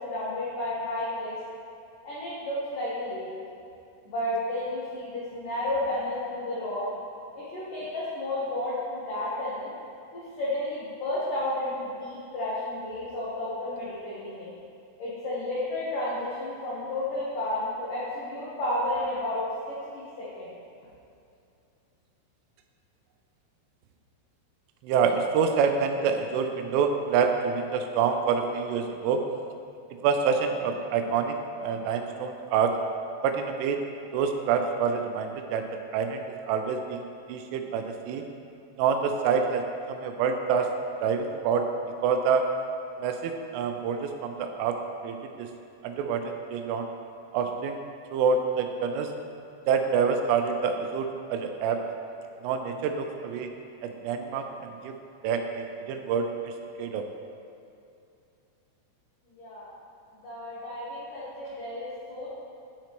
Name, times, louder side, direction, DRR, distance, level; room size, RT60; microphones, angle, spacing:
voice 1, 0.0-1.3 2.0-3.3 4.1-6.8 7.3-9.7 10.1-14.5 15.0-19.4 19.7-20.5 59.3-59.7 60.2-62.3, left 1 dB, 90° left, -9 dB, 1.8 m, -32 dB
voice 2, 24.8-29.2 30.0-32.8 33.2-33.8 34.1-38.2 38.8-40.7 41.0-41.7 42.0-42.5 43.0-44.8 45.0-45.5 45.8-46.9 47.3-47.8 48.1-49.1 49.7-51.8 52.4-53.5 53.8-54.9 55.2-57.1, right 6 dB, 90° right, 5 dB, 3.1 m, -27 dB
10.5 x 5.0 x 3.0 m, 2.6 s
omnidirectional pair, 5.6 m